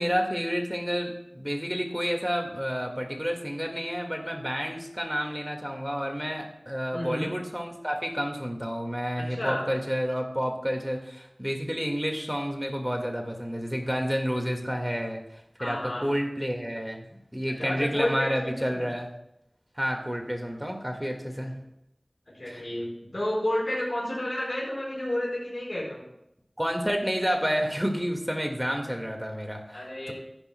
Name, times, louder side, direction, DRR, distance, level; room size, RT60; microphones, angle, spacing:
voice 1, 0.0-15.2 15.6-19.1 19.8-21.5 22.5-22.6 26.6-30.1, equal, 10° right, 2 dB, 1.9 m, -30 dB
voice 2, 6.9-7.3 9.2-9.7 15.6-16.0 17.6-18.9 21.4-21.5 22.3-26.1 29.7-30.1, left 1 dB, 65° left, -6 dB, 4.5 m, -31 dB
15.0 x 11.5 x 2.3 m, 0.81 s
wide cardioid pair, 45°, 0 cm